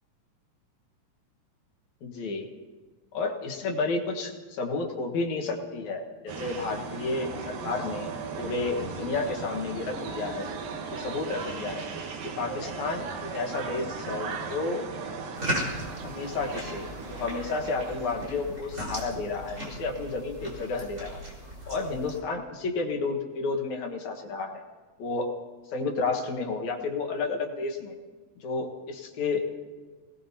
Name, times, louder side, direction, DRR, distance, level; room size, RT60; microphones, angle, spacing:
voice 1, 2.0-2.5 3.1-8.1 8.4-10.5 10.9-11.9 12.4-14.8 16.0-21.2 21.7-24.6 25.0-25.4 25.7-27.9 28.4-29.4, left 3 dB, 65° left, 2 dB, 2.7 m, -31 dB
sound 1, 6.3-18.3, right 5 dB, 90° right, 3.0 m, -37 dB
sound 2, 15.3-22.2, right 1 dB, 25° right, 4.4 m, -37 dB
26.5 x 19.0 x 2.8 m, 1.3 s
omnidirectional pair, 3.9 m